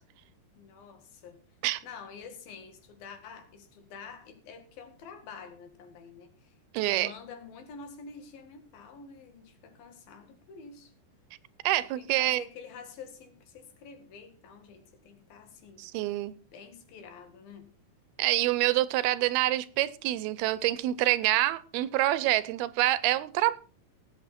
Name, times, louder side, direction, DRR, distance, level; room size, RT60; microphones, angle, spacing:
voice 1, 0.6-1.4 1.8-10.9 12.0-15.8 16.3-17.7, left 5 dB, 70° left, 3.6 m, -48 dB
voice 2, 6.7-7.1 11.6-12.4 15.8-16.3 18.2-23.6, right 15 dB, 85° right, 2.6 m, -26 dB
18.5 x 8.4 x 4.3 m
omnidirectional pair, 4.3 m